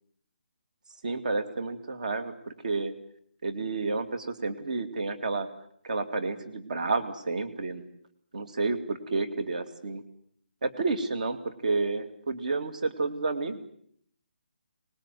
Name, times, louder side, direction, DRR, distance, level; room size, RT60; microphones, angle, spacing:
voice 1, 1.0-2.9 3.4-5.5 5.8-7.8 8.3-10.0 10.6-13.6, right 3 dB, 45° right, 11 dB, 2.5 m, -30 dB
24.5 x 20.0 x 9.2 m, 0.65 s
hypercardioid pair, 175°, 6 cm